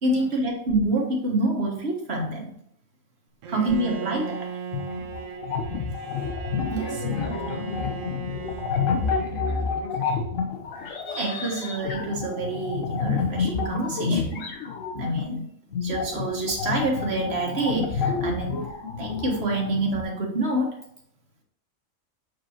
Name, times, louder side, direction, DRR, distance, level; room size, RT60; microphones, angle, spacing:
voice 1, 0.0-2.6 3.5-4.5 6.7-6.9 11.0-14.5 14.9-15.5 15.8-18.6 19.0-20.8, right 2 dB, 55° right, 1.7 m, -27 dB
Bowed string instrument, 3.4-9.7, right 5 dB, 90° right, 1.1 m, -37 dB
voice 2, 3.5-4.1 5.6-6.4 6.8-8.5 9.1-10.3, left 1 dB, 45° left, 1.4 m, -40 dB
sound 1, 4.7-15.2 15.7-20.0, left 5 dB, 85° left, 1.4 m, -29 dB
7.6 x 4.7 x 2.9 m
omnidirectional pair, 1.3 m